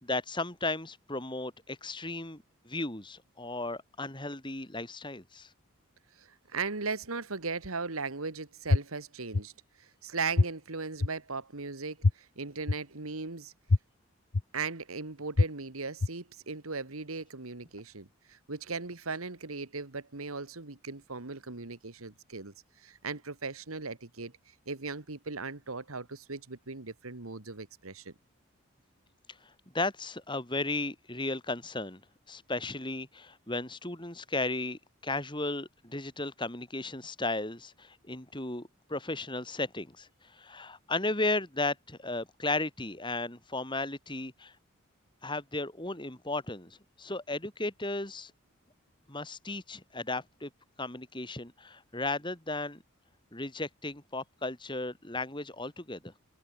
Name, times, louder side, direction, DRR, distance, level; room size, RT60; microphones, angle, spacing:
voice 1, 0.0-5.5 29.7-32.0 32.3-44.5 45.2-48.3 49.1-50.5 50.8-52.8 53.3-56.1, left 2 dB, 20° left, 3.4 m, -35 dB
voice 2, 6.2-9.5 10.0-13.5 14.5-22.5 22.8-24.3 24.7-28.1, right 4 dB, 85° right, 1.8 m, -38 dB
sound 1, 8.7-8.8 9.3-9.4 10.4-10.5 11.0-11.1 12.0-12.1 12.7-12.8 13.7-13.8 14.3-14.4 15.4-15.5 16.0-16.1, left 3 dB, 75° left, 0.8 m, -22 dB
head